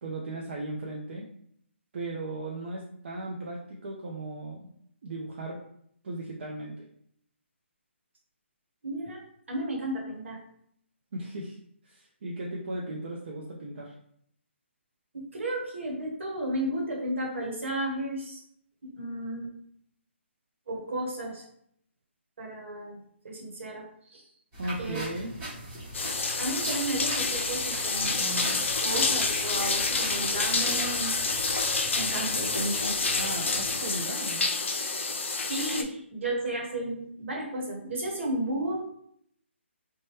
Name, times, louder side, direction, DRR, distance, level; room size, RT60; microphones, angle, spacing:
voice 1, 0.0-1.3 1.9-4.7 5.0-5.6 6.0-6.9 11.1-11.6 11.8-13.9 24.6-25.3 33.1-34.5, right 2 dB, 55° right, -2 dB, 0.5 m, -36 dB
voice 2, 8.8-9.2 9.5-10.4 15.1-18.4 18.8-19.5 20.7-21.5 22.4-23.0 23.2-24.2 24.8-25.0 26.4-31.2 31.9-33.0 35.5-38.9, right 1 dB, 70° right, -1 dB, 1.1 m, -33 dB
sound 1, 24.5-33.7, right 1 dB, 20° right, 1.1 m, -40 dB
sound 2, 25.9-35.8, left 3 dB, 70° left, 0.5 m, -28 dB
3.1 x 2.2 x 3.0 m, 0.68 s
hypercardioid pair, 150°, 7 cm